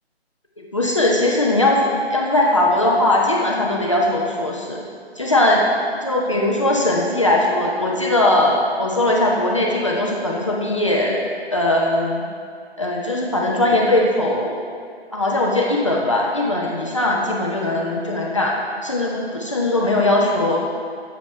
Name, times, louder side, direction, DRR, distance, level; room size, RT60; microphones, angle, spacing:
voice 1, 0.7-4.8 5.2-5.6 6.0-11.2 11.5-12.2 12.8-14.6 15.1-20.6, left 1 dB, 30° left, -2 dB, 0.6 m, -19 dB
12.5 x 7.0 x 3.1 m, 2.2 s
figure-of-eight pair, 170°, 33 cm